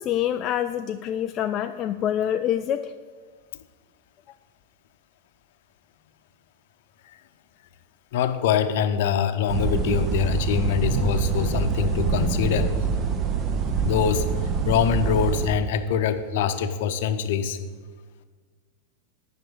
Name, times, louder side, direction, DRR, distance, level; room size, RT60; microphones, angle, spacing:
voice 1, 0.0-2.9, left 10 dB, 30° left, 6 dB, 0.4 m, -26 dB
voice 2, 8.1-12.7 13.8-14.3 14.7-17.6, left 8 dB, 55° left, 9 dB, 0.9 m, -24 dB
sound 1, 9.5-15.5, right 6 dB, 30° right, 1.1 m, -25 dB
10.5 x 6.1 x 8.8 m, 1.4 s
figure-of-eight pair, 90°, 0 cm